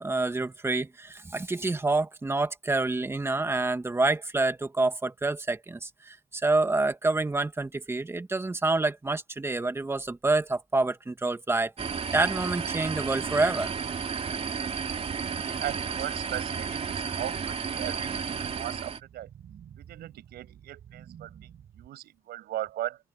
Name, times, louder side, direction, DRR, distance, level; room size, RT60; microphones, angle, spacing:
voice 1, 0.0-11.7 12.1-13.7, right 2 dB, 15° right, 2.1 m, -27 dB
sound 1, 11.8-19.0, right 6 dB, 35° right, 3.4 m, -32 dB
sound 2, 13.3-21.9, right 9 dB, 55° right, 5.1 m, -50 dB
voice 2, 15.3-19.3 19.8-23.0, right 13 dB, 70° right, 6.2 m, -38 dB
cardioid pair, 110°, 17 cm